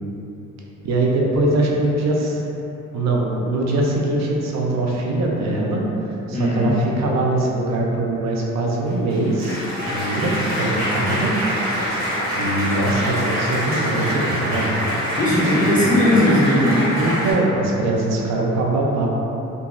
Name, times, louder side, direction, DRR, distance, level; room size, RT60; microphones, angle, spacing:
voice 1, 0.8-2.4 2.9-5.8 6.3-9.6 9.9-11.3 12.4-14.9 15.6-16.0 17.0-19.1, right 2 dB, 60° right, -2 dB, 0.6 m, -22 dB
voice 2, 6.3-6.8 15.2-16.8, left 1 dB, 25° left, -9 dB, 1.1 m, -18 dB
Applause, 8.9-17.3, equal, 30° right, 1.4 m, -25 dB
2.9 x 2.6 x 2.5 m, 3.0 s
cardioid pair, 90°, 30 cm